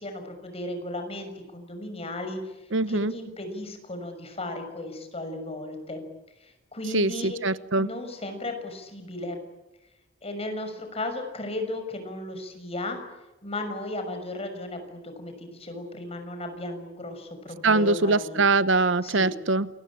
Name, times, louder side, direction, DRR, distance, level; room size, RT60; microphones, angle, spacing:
voice 1, 0.0-2.4 2.9-6.0 6.4-7.4 7.8-9.4 10.2-13.0 13.4-18.4 19.0-19.3, left 1 dB, 30° left, 6 dB, 6.4 m, -35 dB
voice 2, 2.7-3.1 6.9-7.9 17.6-19.7, right 3 dB, 75° right, 15 dB, 1.0 m, -23 dB
29.0 x 22.0 x 8.8 m, 1.0 s
head